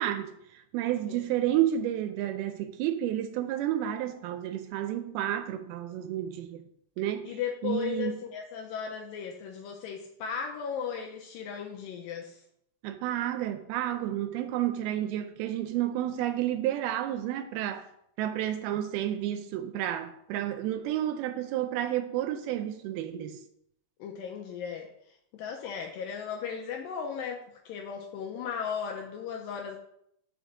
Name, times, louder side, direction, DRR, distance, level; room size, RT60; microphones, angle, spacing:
voice 1, 0.0-6.6 7.0-8.1 12.8-17.9 18.2-23.4, right 12 dB, 80° right, 2.3 m, -31 dB
voice 2, 7.2-12.4 24.0-29.8, left 7 dB, 85° left, 2.1 m, -36 dB
5.3 x 5.0 x 6.3 m
omnidirectional pair, 4.6 m